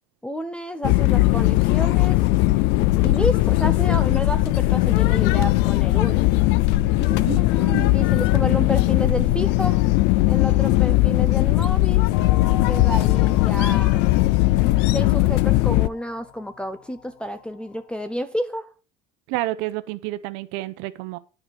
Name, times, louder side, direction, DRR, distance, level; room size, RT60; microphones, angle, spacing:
voice 1, 0.2-2.2 3.0-6.2 7.0-9.8 10.3-12.1 12.4-14.1 14.8-18.7, equal, 5° left, 0.6 m, -30 dB
sound 1, 0.8-15.9, left 18 dB, 70° left, 0.5 m, -19 dB
voice 2, 7.3-8.1 19.3-21.2, right 17 dB, 80° right, 0.8 m, -30 dB
sound 2, 12.1-17.4, left 10 dB, 90° left, 1.4 m, -35 dB
9.9 x 4.9 x 6.2 m
cardioid pair, 140°, 18 cm